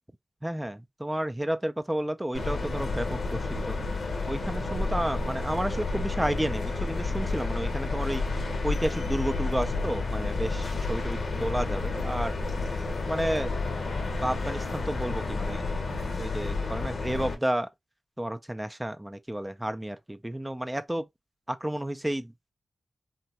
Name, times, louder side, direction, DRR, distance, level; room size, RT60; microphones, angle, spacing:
voice 1, 0.4-3.8 4.3-8.3 8.6-12.3 13.1-13.5 14.2-15.7 16.2-17.7 18.2-21.1 21.5-22.5, right 1 dB, 15° right, 0.3 m, -31 dB
sound 1, 2.3-17.3, left 3 dB, 80° left, 0.7 m, -30 dB
3.3 x 2.1 x 2.7 m
cardioid pair, 45°, 0 cm